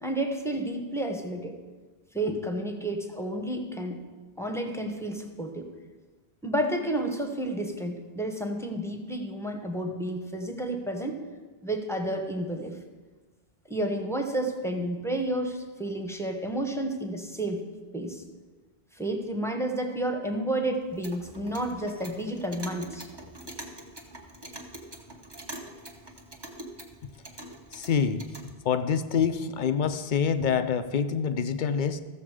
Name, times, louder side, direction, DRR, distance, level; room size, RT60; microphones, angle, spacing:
voice 1, 0.0-1.6 2.1-4.0 4.4-5.7 6.4-11.2 11.6-12.8 13.7-17.6 17.9-18.2 18.9-23.1, right 1 dB, 5° left, 4 dB, 1.0 m, -31 dB
Clock, 20.8-28.5, right 1 dB, 25° right, 1.1 m, -44 dB
voice 2, 27.7-28.3 28.6-32.0, left 7 dB, 55° left, 10 dB, 0.7 m, -26 dB
14.0 x 7.0 x 4.9 m, 1.4 s
omnidirectional pair, 1.1 m